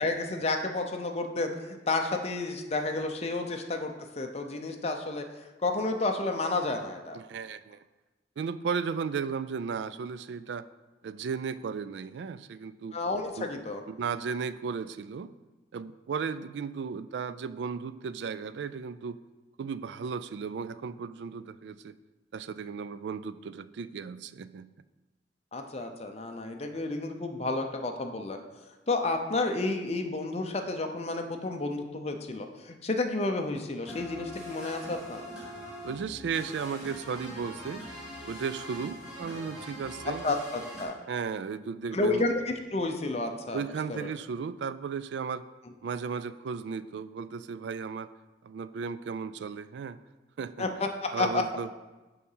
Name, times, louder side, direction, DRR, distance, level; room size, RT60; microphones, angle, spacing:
voice 1, 0.0-5.2 5.6-7.2 12.9-13.8 25.5-28.4 28.9-35.2 40.2-41.0 41.9-43.6 43.9-44.1 50.6-51.4, left 2 dB, 35° left, 4 dB, 0.6 m, -31 dB
voice 2, 7.1-7.8 8.4-10.7 11.0-13.0 13.4-13.5 13.9-15.3 15.7-19.2 19.6-21.9 22.3-24.7 35.8-37.8 38.3-40.3 41.1-42.3 43.5-45.4 45.8-48.1 48.4-50.0 50.4-50.7 51.1-51.7, right 6 dB, 80° right, 15 dB, 0.3 m, -35 dB
sound 1, 33.8-40.8, equal, 5° right, 2.1 m, -43 dB
6.9 x 4.8 x 5.5 m, 1.2 s
head